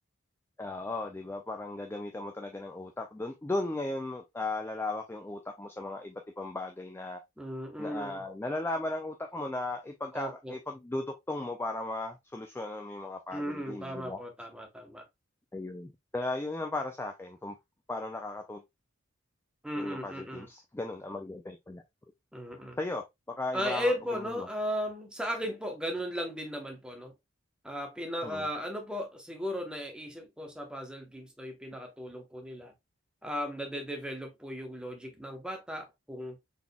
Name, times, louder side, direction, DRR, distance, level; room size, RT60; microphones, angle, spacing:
voice 1, 0.6-7.2 7.8-14.2 15.5-17.6 17.9-18.6 19.8-21.8 22.8-24.5 28.2-28.5, left 2 dB, 10° left, 0.4 m, -36 dB
voice 2, 7.4-8.2 10.1-10.5 13.3-15.0 19.6-20.5 22.3-22.8 23.5-27.1 27.6-32.7 33.2-36.4, equal, 5° right, 0.9 m, -36 dB
4.0 x 3.6 x 2.2 m
head